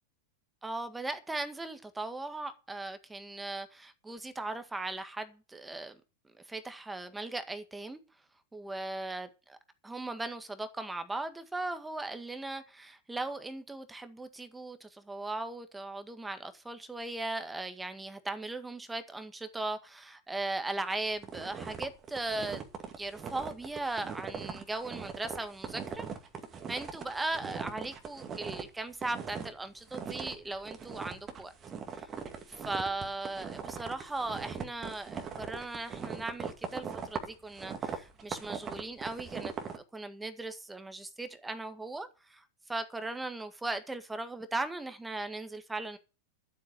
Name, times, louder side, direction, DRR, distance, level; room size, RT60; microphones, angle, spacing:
voice 1, 0.6-6.0 6.3-8.0 8.5-9.6 9.8-22.6 23.0-26.1 26.7-31.5 32.0-32.1 32.6-39.5 39.9-46.0, right 2 dB, 10° right, 1.8 m, -38 dB
sound 1, 21.2-28.7 28.9-29.6 29.9-39.8, right 6 dB, 25° right, 2.0 m, -40 dB
12.5 x 8.2 x 6.7 m
figure-of-eight pair, 90°, 0 cm